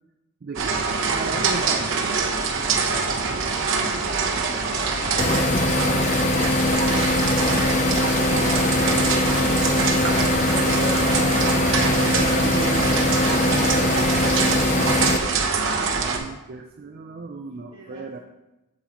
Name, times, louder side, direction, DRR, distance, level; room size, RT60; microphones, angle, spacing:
voice 1, 0.4-2.0 10.3-13.9 14.6-15.5 16.0-18.2, right 4 dB, 45° right, 4 dB, 0.4 m, -34 dB
sound 1, 0.6-16.2, right 4 dB, 65° right, 0.9 m, -24 dB
voice 2, 1.3-1.8 17.5-18.2, right 2 dB, 25° right, -6 dB, 2.1 m, -43 dB
sound 2, 4.6-10.9, left 2 dB, 70° left, 1.1 m, -38 dB
sound 3, 5.2-15.2, left 2 dB, 35° left, 0.5 m, -22 dB
8.5 x 7.1 x 3.0 m, 0.99 s
head